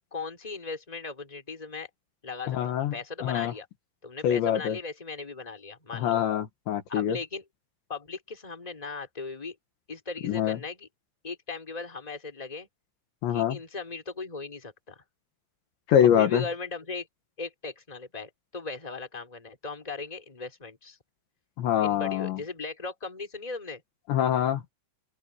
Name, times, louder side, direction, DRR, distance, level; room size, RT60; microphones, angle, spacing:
voice 1, 0.1-1.9 2.2-3.7 4.0-6.2 6.9-7.4 7.9-9.5 9.9-10.9 11.2-12.7 13.3-15.0 16.0-17.1 17.4-21.0 21.8-23.8, left 4 dB, 10° left, 3.7 m, -38 dB
voice 2, 2.5-2.9 3.2-3.5 4.2-4.8 5.9-7.2 10.2-10.6 13.2-13.6 15.9-16.4 21.6-22.4 24.1-24.6, left 10 dB, 70° left, 3.9 m, -24 dB
open air
omnidirectional pair, 5.6 m